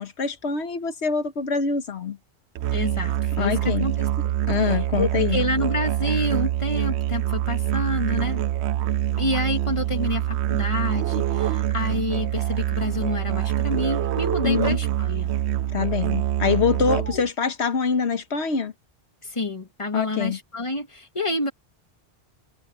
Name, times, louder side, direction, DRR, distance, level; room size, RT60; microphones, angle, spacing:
voice 1, 0.0-2.2 3.4-3.9 4.5-5.4 14.4-14.8 15.7-18.7 19.9-20.4, left 6 dB, 90° left, 1.5 m, -24 dB
Musical instrument, 2.5-17.3, right 12 dB, 85° right, 0.9 m, -25 dB
voice 2, 2.7-4.3 4.7-8.4 9.2-15.3 17.1-17.2 19.2-21.5, left 2 dB, 30° left, 2.2 m, -28 dB
omnidirectional pair, 1.1 m